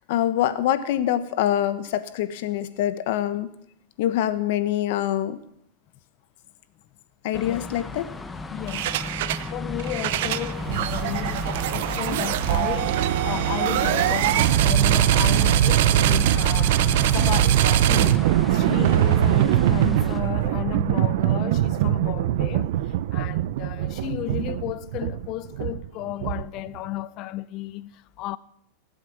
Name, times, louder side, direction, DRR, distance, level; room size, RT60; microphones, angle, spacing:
voice 1, 0.1-3.5 4.0-5.4 7.2-8.1, left 12 dB, 65° left, 1.1 m, -25 dB
voice 2, 7.3-7.7 8.5-28.4, left 15 dB, 40° left, 0.5 m, -33 dB
sound 1, 7.3-20.2, left 3 dB, 10° left, 0.8 m, -34 dB
sound 2, 8.7-9.5 9.8-26.7, right 12 dB, 65° right, 0.6 m, -22 dB
19.0 x 7.9 x 6.0 m
supercardioid pair, 140°, 0 cm